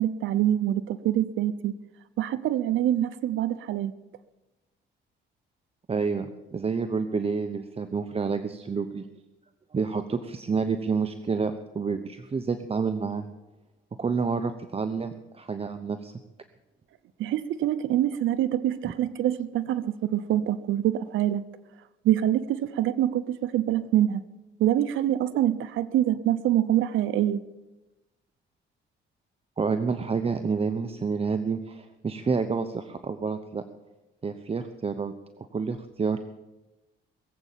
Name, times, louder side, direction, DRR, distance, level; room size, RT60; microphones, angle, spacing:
voice 1, 0.0-1.7 2.2-3.9 17.2-21.4 22.0-24.2 24.6-27.4, right 12 dB, 80° right, 15 dB, 0.7 m, -25 dB
voice 2, 5.9-9.1 9.7-13.3 14.0-16.1 18.8-18.9 29.6-33.6 34.2-36.2, right 5 dB, 30° right, 9 dB, 0.9 m, -29 dB
21.0 x 8.0 x 7.4 m, 1.1 s
cardioid pair, 90°, 20 cm